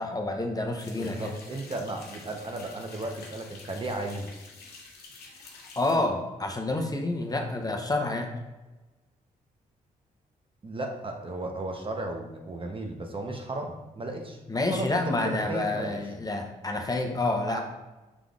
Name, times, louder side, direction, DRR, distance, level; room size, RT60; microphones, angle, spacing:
voice 1, 0.0-1.3 5.8-8.3 14.5-17.6, left 2 dB, 25° left, 3 dB, 0.7 m, -28 dB
sound 1, 0.8-6.0, left 3 dB, 80° left, 0.8 m, -48 dB
voice 2, 0.9-4.3 10.6-14.4 14.7-14.9 15.2-16.0 17.5-17.6, right 2 dB, 35° right, 3 dB, 0.7 m, -35 dB
5.0 x 3.6 x 2.4 m, 1.1 s
supercardioid pair, 55°, 16 cm